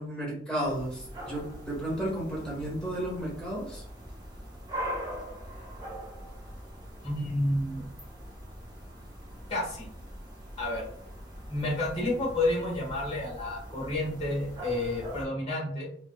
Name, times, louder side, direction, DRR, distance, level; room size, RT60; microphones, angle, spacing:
voice 1, 0.0-3.8, right 1 dB, 5° left, -6 dB, 1.3 m, -33 dB
sound 1, 0.6-15.2, equal, 25° right, 0.8 m, -42 dB
voice 2, 7.0-7.8 9.5-9.9 10.6-10.9 11.5-15.9, left 1 dB, 35° left, -5 dB, 1.4 m, -30 dB
3.2 x 2.6 x 2.3 m, 0.63 s
head